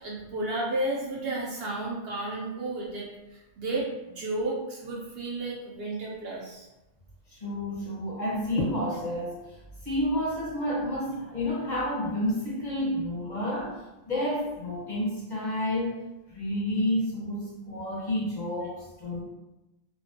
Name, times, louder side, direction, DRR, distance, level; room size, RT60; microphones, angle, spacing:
voice 1, 0.0-6.7, right 2 dB, 65° right, -4 dB, 0.7 m, -32 dB
voice 2, 7.3-9.6 9.8-13.8 14.1-19.2, left 1 dB, 40° left, -8 dB, 1.0 m, -30 dB
2.5 x 2.1 x 2.5 m, 0.99 s
omnidirectional pair, 1.2 m